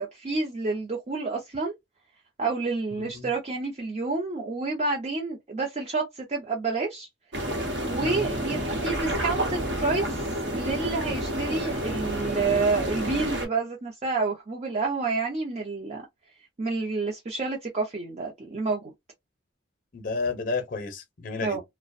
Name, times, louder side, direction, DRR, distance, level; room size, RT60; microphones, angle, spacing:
voice 1, 0.0-1.7 2.4-7.1 7.8-16.0 16.6-18.9 21.4-21.6, right 3 dB, 35° right, 0.5 m, -29 dB
voice 2, 3.0-3.3 8.0-8.3 19.9-21.6, left 3 dB, 50° left, 0.6 m, -31 dB
sound 1, 7.3-13.5, right 1 dB, 70° right, 0.9 m, -29 dB
2.4 x 2.1 x 2.5 m
head